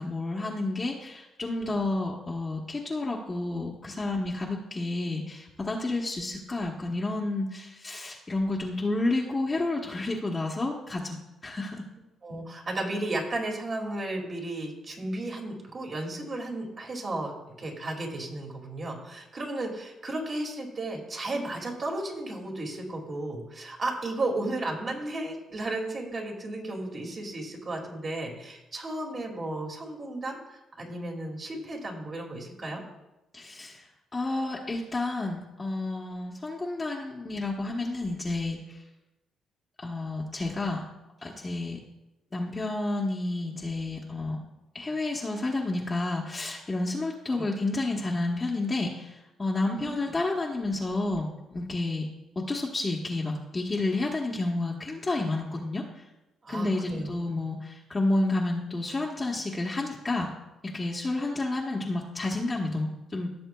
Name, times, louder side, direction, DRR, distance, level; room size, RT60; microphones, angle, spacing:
voice 1, 0.0-11.9 33.3-33.9 34.1-38.8 39.8-40.8 41.2-41.8 42.3-44.4 44.7-52.1 52.3-56.0 56.5-60.3 60.6-63.3, left 2 dB, 25° left, -3 dB, 1.1 m, -30 dB
voice 2, 12.2-32.8 47.3-47.4 49.7-50.1 56.4-57.4, right 2 dB, 40° right, 0 dB, 2.4 m, -34 dB
16.0 x 7.0 x 2.3 m, 0.97 s
cardioid pair, 90°, 0 cm